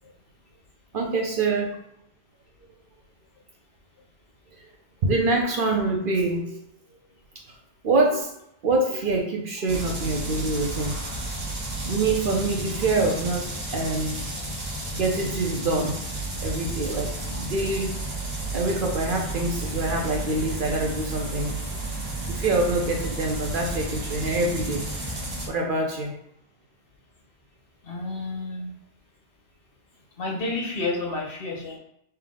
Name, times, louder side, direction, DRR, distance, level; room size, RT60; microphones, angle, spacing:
voice 1, 0.9-1.7 4.6-4.7 5.0-6.6 7.8-8.3 8.6-11.0 11.8-14.2 14.9-16.0 16.4-18.0 18.5-21.6 22.3-24.9 25.5-26.2, right 2 dB, 60° right, 1 dB, 0.7 m, -25 dB
sound 1, 9.7-25.5, right 2 dB, 40° right, 1.1 m, -32 dB
voice 2, 27.8-28.7 30.2-31.8, left 2 dB, 60° left, -1 dB, 1.0 m, -30 dB
3.3 x 2.9 x 3.7 m, 0.78 s
omnidirectional pair, 1.2 m